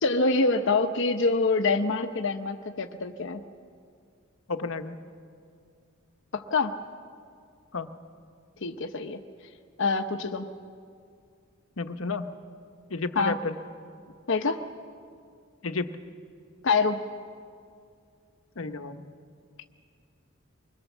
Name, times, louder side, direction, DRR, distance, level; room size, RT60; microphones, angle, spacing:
voice 1, 0.0-3.4 6.3-6.8 8.6-9.2 9.8-10.5 13.2-13.3 14.3-14.6 16.6-17.0, left 3 dB, 65° left, 5 dB, 0.9 m, -25 dB
voice 2, 4.5-5.0 7.7-7.9 11.8-12.3 12.9-13.5 15.6-15.9 18.6-19.0, left 3 dB, 85° left, 8 dB, 1.1 m, -31 dB
25.0 x 21.0 x 7.3 m, 2.3 s
head